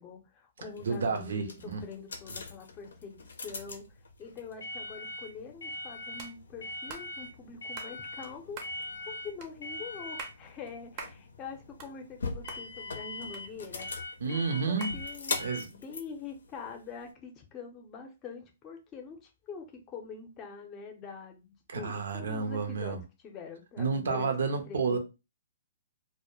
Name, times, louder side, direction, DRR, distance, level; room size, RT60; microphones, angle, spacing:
voice 1, 0.0-3.9 4.2-8.8 9.1-13.9 14.3-15.4 15.7-24.3 24.7-25.0, left 5 dB, 25° left, 0.6 m, -45 dB
sound 1, 0.7-17.1, left 3 dB, 85° left, 0.5 m, -41 dB
voice 2, 0.8-1.8 14.2-15.0 15.4-15.7 21.7-23.0 23.8-25.0, right 5 dB, 75° right, 0.6 m, -30 dB
sound 2, 6.2-6.3 6.9-7.1 7.8-7.9 8.5-8.8 9.4-9.5 10.0-10.4 11.0-11.2 11.6-12.2 12.5-12.6 13.3-13.9 14.8-15.0, right 5 dB, 35° right, 0.5 m, -44 dB
2.1 x 2.1 x 2.9 m
hypercardioid pair, 140°, 0 cm